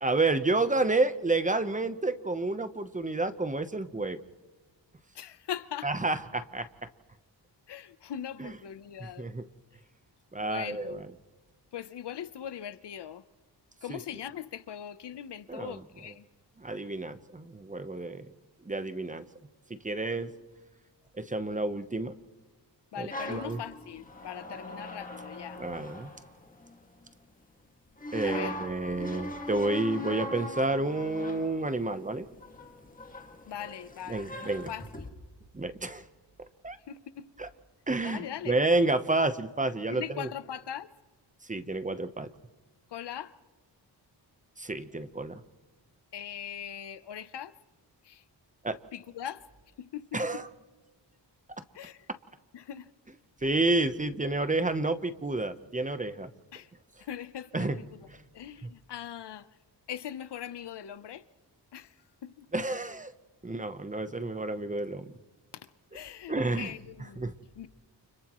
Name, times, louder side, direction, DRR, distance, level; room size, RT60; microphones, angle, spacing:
voice 1, 0.0-4.2 5.8-6.7 8.4-8.5 9.0-9.4 10.3-11.1 13.9-14.0 15.5-15.8 16.6-18.3 18.7-19.3 19.7-20.3 21.2-22.1 23.0-23.6 25.6-26.1 28.1-32.3 34.1-34.7 35.5-36.0 36.6-36.8 37.4-37.5 37.9-40.3 41.5-42.3 44.6-45.4 48.6-48.8 50.1-50.5 53.4-56.3 57.5-57.8 58.6-58.7 62.5-63.1 63.4-65.1 66.3-66.7 67.2-67.3, right 2 dB, 20° right, 0.9 m, -30 dB
voice 2, 5.1-6.1 7.7-9.3 10.4-11.0 11.7-13.2 13.8-16.2 22.9-25.6 28.2-28.5 33.5-35.1 36.9-37.3 38.0-38.6 39.9-40.9 42.9-43.3 46.1-47.5 48.0-48.2 48.9-49.4 49.8-50.4 51.7-52.1 52.5-52.9 53.4-53.6 56.5-56.7 57.0-58.1 58.3-59.5 59.9-61.2 61.7-62.0 62.2-62.5 65.5-65.7 65.9-67.2 67.6-67.7, left 9 dB, 70° left, 0.9 m, -41 dB
sound 1, 23.1-27.1 28.0-35.1, left 1 dB, 20° left, 2.1 m, -41 dB
30.0 x 29.5 x 3.1 m
wide cardioid pair, 120°, 43 cm